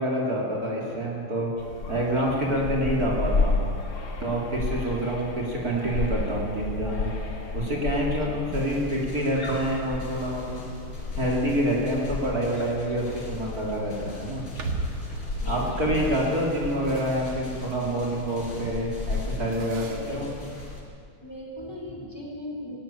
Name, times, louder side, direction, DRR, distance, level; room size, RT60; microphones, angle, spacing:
voice 1, 0.0-1.5 1.9-3.7 4.2-7.1 7.5-10.7 11.2-14.4 15.4-20.3, right 1 dB, 40° right, -3 dB, 3.2 m, -27 dB
sound 1, 1.6-20.8, left 3 dB, 50° left, 2.4 m, -33 dB
sound 2, 8.5-20.8, left 1 dB, 85° left, 5.5 m, -49 dB
sound 3, 14.1-20.4, right 3 dB, 70° right, 2.6 m, -39 dB
voice 2, 15.3-16.2 19.9-20.2 21.2-22.8, left 1 dB, 10° left, -2 dB, 4.1 m, -39 dB
17.0 x 17.0 x 9.9 m, 2.4 s
omnidirectional pair, 2.4 m